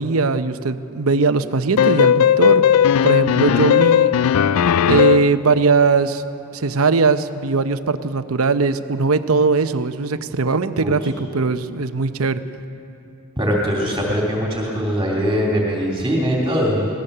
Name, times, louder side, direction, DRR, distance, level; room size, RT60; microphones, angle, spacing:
voice 1, 0.0-2.6 3.0-4.1 4.9-6.2 6.5-12.4, right 4 dB, 75° right, 10 dB, 0.8 m, -19 dB
sound 1, 1.8-5.4, left 9 dB, 85° left, 0.4 m, -16 dB
voice 2, 13.4-16.9, equal, 15° right, -2 dB, 2.9 m, -21 dB
23.0 x 18.0 x 6.7 m, 2.8 s
head